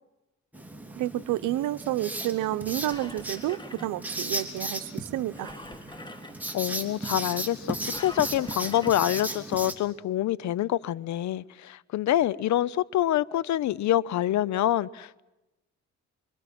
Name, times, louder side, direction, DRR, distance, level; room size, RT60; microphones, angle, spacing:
Writing, 0.5-9.7, right 1 dB, 5° right, 2.9 m, -36 dB
voice 1, 1.0-5.5, right 14 dB, 90° right, 0.8 m, -30 dB
Engine, 2.5-4.5 5.3-6.6 7.9-9.3 9.9-10.0, left 1 dB, 15° left, 1.9 m, -45 dB
voice 2, 6.5-15.2, left 12 dB, 70° left, 0.7 m, -26 dB
25.5 x 24.0 x 6.1 m
cardioid pair, 90°, 30 cm